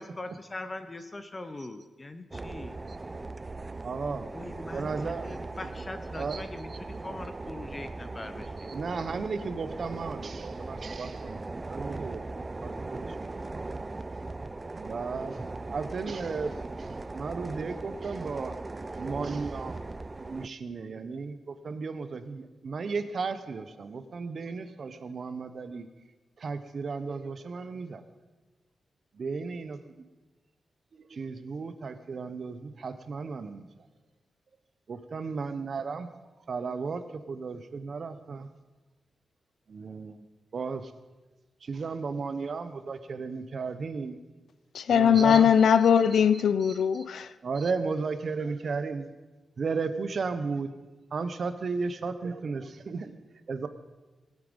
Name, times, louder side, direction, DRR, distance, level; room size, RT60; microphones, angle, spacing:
voice 1, 0.0-2.7 4.0-8.5, left 2 dB, 20° left, 0.7 m, -42 dB
sound 1, 2.3-20.5, right 2 dB, 20° right, 0.3 m, -39 dB
voice 2, 2.6-3.0 3.8-4.3 4.7-5.3 5.6-5.8 6.1-6.8 8.6-13.6 14.8-15.4 15.7-18.6 18.9-19.8 20.2-25.9 26.4-28.0 29.1-29.9 30.9-33.7 34.9-36.1 36.5-38.5 39.7-40.3 40.5-40.9 41.6-44.2 44.9-45.5 46.1-46.2 46.6-46.8 47.4-49.1 49.6-50.7 51.1-53.1 53.5-53.7, right 4 dB, 45° right, 0.8 m, -35 dB
voice 3, 44.7-47.3, left 8 dB, 80° left, 0.5 m, -21 dB
20.0 x 9.0 x 5.3 m
wide cardioid pair, 170°, 0 cm